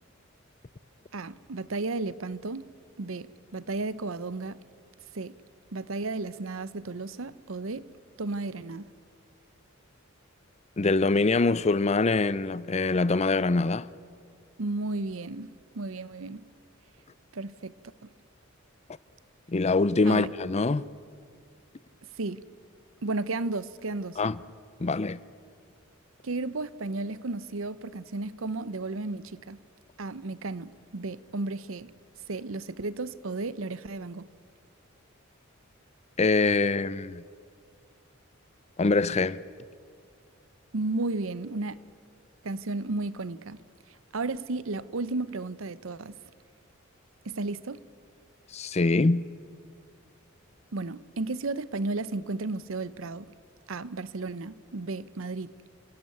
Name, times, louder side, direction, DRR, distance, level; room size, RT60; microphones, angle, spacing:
voice 1, 1.1-2.7 3.0-4.6 5.1-5.3 5.7-7.9 8.2-8.9 14.6-16.4 17.3-17.7 20.1-20.3 22.2-22.4 23.0-24.2 26.2-29.6 30.0-31.9 32.3-34.3 40.7-41.8 42.4-43.6 44.1-46.2 47.2-47.8 50.7-53.3 53.7-55.5, right 3 dB, 75° right, 0.8 m, -33 dB
voice 2, 10.8-13.9 19.5-20.9 24.2-24.4 24.8-25.2 36.2-37.2 38.8-39.4 48.5-49.3, left 3 dB, 30° left, 0.5 m, -24 dB
29.0 x 16.5 x 9.2 m
head